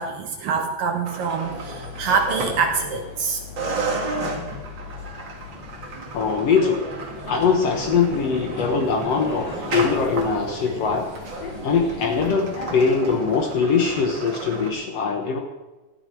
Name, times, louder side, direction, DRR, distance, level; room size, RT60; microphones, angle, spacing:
voice 1, 0.0-3.4, right 5 dB, 70° right, 4 dB, 2.5 m, -25 dB
sound 1, 1.0-3.2 3.6-14.7, right 3 dB, 40° right, 2.0 m, -32 dB
sound 2, 1.4-12.7, left 4 dB, 60° left, 3.7 m, -39 dB
voice 2, 6.1-6.8 7.2-11.1 11.6-15.4, left 5 dB, 80° left, 3 dB, 1.4 m, -22 dB
18.0 x 13.0 x 4.6 m, 1.2 s
omnidirectional pair, 4.8 m